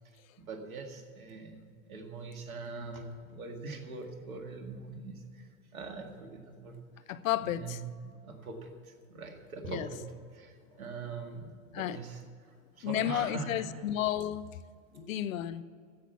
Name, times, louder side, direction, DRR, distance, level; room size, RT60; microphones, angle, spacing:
voice 1, 0.4-6.8 7.4-10.0 10.3-13.8 14.9-15.2, right 4 dB, 85° right, 2.1 m, -43 dB
voice 2, 7.1-7.8 9.7-9.9 11.7-12.0 12.8-14.4 14.9-15.6, left 12 dB, 70° left, 0.8 m, -32 dB
15.5 x 6.1 x 8.2 m
hypercardioid pair, 100°, 41 cm